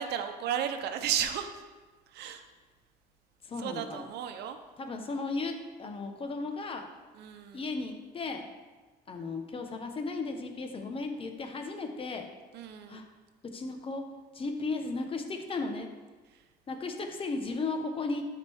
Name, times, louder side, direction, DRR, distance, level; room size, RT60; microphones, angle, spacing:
voice 1, 0.0-1.5 2.1-2.4 3.6-4.6 7.2-7.6 12.5-13.0, right 9 dB, 75° right, 7 dB, 0.8 m, -33 dB
voice 2, 3.4-4.1 4.8-6.9 7.5-8.5 9.1-12.3 12.9-13.0 13.5-14.0 14.3-15.9 16.7-18.3, left 3 dB, 30° left, 5 dB, 1.1 m, -35 dB
12.5 x 5.1 x 3.6 m, 1.3 s
cardioid pair, 110°, 17 cm